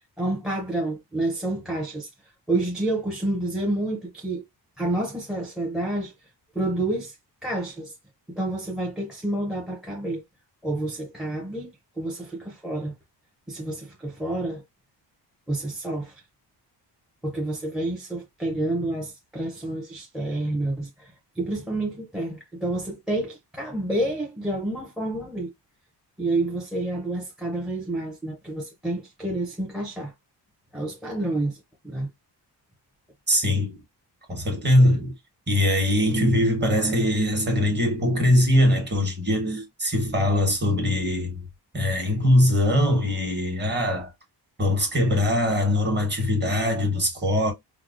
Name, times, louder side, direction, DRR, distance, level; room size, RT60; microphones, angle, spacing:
voice 1, 0.2-2.1 2.5-4.5 4.8-6.1 6.5-7.2 7.4-7.9 8.3-10.2 10.6-11.7 12.0-12.9 13.5-14.6 15.5-16.2 17.2-25.5 26.2-30.1 30.7-32.1, right 2 dB, ahead, 0.5 m, -29 dB
voice 2, 33.3-33.8 34.3-35.1 35.5-41.4 41.7-44.1 44.6-47.5, left 1 dB, 25° right, 1.0 m, -22 dB
4.6 x 2.0 x 2.4 m
wide cardioid pair, 160°, 42 cm